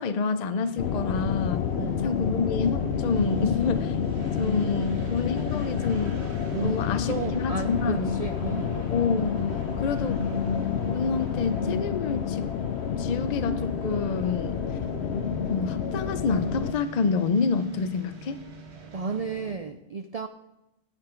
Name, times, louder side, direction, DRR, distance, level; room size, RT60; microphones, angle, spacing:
voice 1, 0.0-1.6 2.0-4.0 4.4-6.2 6.6-8.1 8.9-9.5 9.8-10.2 10.9-12.5 13.0-14.6 15.5-18.4, left 5 dB, 45° left, 10 dB, 0.7 m, -28 dB
sound 1, 0.6-19.5, right 4 dB, 75° right, 1.5 m, -43 dB
sound 2, 0.8-16.7, left 7 dB, 70° left, 0.9 m, -29 dB
voice 2, 1.7-2.1 6.5-6.8 7.1-8.9 18.9-20.3, right 4 dB, 55° right, 8 dB, 0.4 m, -33 dB
17.5 x 6.0 x 4.5 m, 0.90 s
omnidirectional pair, 1.2 m